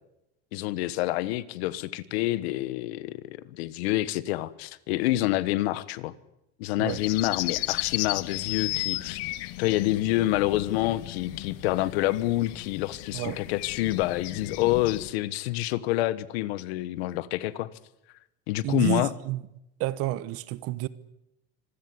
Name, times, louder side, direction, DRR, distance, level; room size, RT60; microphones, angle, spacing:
voice 1, 0.5-6.1 6.6-9.2 9.6-17.7 18.5-19.1, left 16 dB, 70° left, 1.4 m, -27 dB
sound 1, 6.9-15.1, left 20 dB, 50° left, 1.0 m, -34 dB
voice 2, 18.6-19.4 19.8-20.9, right 16 dB, 45° right, 1.2 m, -30 dB
25.5 x 16.5 x 9.8 m
supercardioid pair, 150°, 32 cm